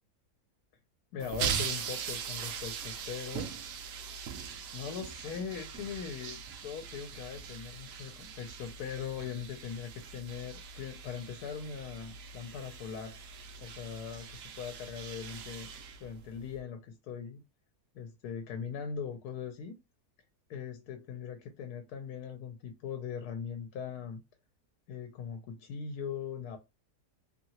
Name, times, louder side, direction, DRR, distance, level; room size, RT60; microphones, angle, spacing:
voice 1, 1.1-3.5 4.7-13.2 13.6-15.7 16.0-17.4 17.9-19.7 20.5-24.2 24.9-26.6, left 7 dB, 80° left, 1.1 m, -40 dB
sound 1, 1.2-16.6, right 7 dB, 70° right, 0.9 m, -41 dB
2.9 x 2.7 x 2.7 m
omnidirectional pair, 1.6 m